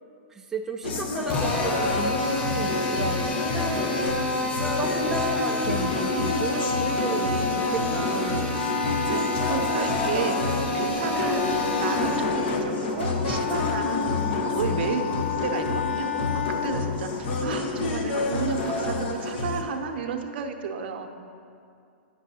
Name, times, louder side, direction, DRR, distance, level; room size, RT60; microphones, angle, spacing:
voice 1, 0.3-4.2 4.6-8.7 14.0-14.9, right 4 dB, 5° right, 1 dB, 0.3 m, -34 dB
sound 1, 0.8-19.6, left 3 dB, 65° left, 0.9 m, -28 dB
Drill, 1.3-12.3, left 1 dB, 20° left, 0.8 m, -29 dB
Wind instrument woodwind instrument, 8.0-17.1, left 8 dB, 90° left, 0.4 m, -33 dB
voice 2, 8.8-11.4 11.7-14.1 14.4-21.1, right 6 dB, 65° right, 5 dB, 0.7 m, -32 dB
9.7 x 6.1 x 2.8 m, 2.5 s
hypercardioid pair, 135°, 6 cm